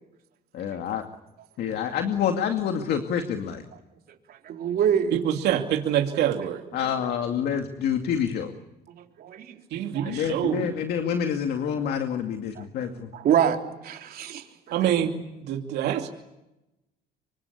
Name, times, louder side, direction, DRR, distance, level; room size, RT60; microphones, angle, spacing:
voice 1, 0.5-1.0 1.6-3.6 6.7-8.5 10.0-13.1, left 8 dB, 70° left, 5 dB, 2.4 m, -27 dB
voice 2, 4.4-5.2 9.2-9.5 9.9-10.2 12.6-13.6 13.8-14.9, right 9 dB, 60° right, 3 dB, 3.8 m, -26 dB
voice 3, 5.1-6.6 9.7-10.7 14.7-15.1 15.4-16.1, right 10 dB, 80° right, 3 dB, 2.6 m, -25 dB
27.0 x 24.5 x 8.5 m, 0.93 s
cardioid pair, 110°, 17 cm